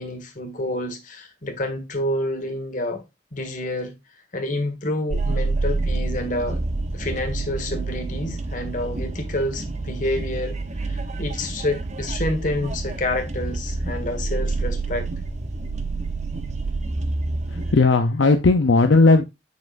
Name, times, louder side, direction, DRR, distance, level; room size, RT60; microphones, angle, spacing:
voice 1, 0.0-3.0 3.3-3.9 4.3-6.6 6.9-15.1, left 1 dB, 45° left, 1.6 m, -28 dB
sound 1, 5.1-17.8, right 3 dB, 35° right, 0.7 m, -28 dB
voice 2, 17.5-19.2, left 3 dB, 70° left, 0.6 m, -16 dB
7.3 x 6.0 x 2.5 m
head